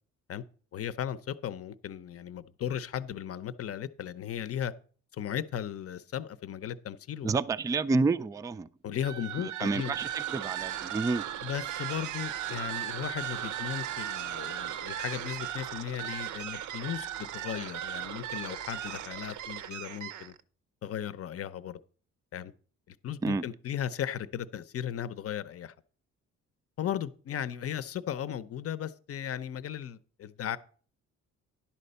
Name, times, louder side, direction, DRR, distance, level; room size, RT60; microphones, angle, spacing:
voice 1, 0.7-4.7 5.1-7.3 8.8-9.9 11.4-20.3 20.8-21.8 22.3-22.5 22.9-25.7 26.8-30.6, left 10 dB, 50° left, 0.7 m, -36 dB
voice 2, 7.2-8.7 9.6-11.2 23.2-23.4, right 3 dB, 10° right, 0.3 m, -29 dB
sound 1, 9.0-20.4, right 11 dB, 75° right, 0.6 m, -37 dB
10.5 x 4.2 x 6.7 m
cardioid pair, 90°, 30 cm